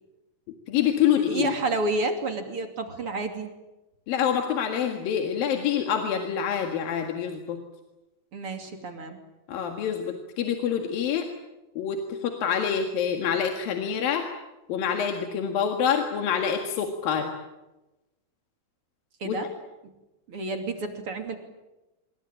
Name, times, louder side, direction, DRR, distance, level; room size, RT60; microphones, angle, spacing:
voice 1, 0.7-1.6 4.1-7.6 9.5-11.3 11.8-14.3 14.7-17.3 19.3-19.5, left 8 dB, 80° left, 4 dB, 3.6 m, -26 dB
voice 2, 1.3-3.5 8.3-9.2 19.2-19.5 20.3-21.4, right 2 dB, 40° right, 5 dB, 3.4 m, -30 dB
26.0 x 23.0 x 8.9 m, 1.0 s
omnidirectional pair, 4.0 m